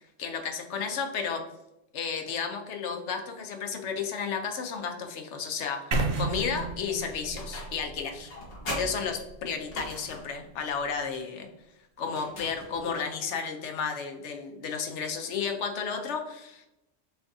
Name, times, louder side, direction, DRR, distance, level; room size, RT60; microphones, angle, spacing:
voice 1, 0.2-1.4 1.9-8.3 8.7-11.5 12.0-16.7, left 6 dB, 85° left, 4 dB, 1.0 m, -33 dB
sound 1, 5.9-9.9, right 3 dB, 55° right, 0.7 m, -33 dB
sound 2, 7.4-7.9 8.3-10.4 12.1-13.0, left 1 dB, 60° left, 1.3 m, -39 dB
6.9 x 2.4 x 2.6 m, 0.91 s
omnidirectional pair, 1.2 m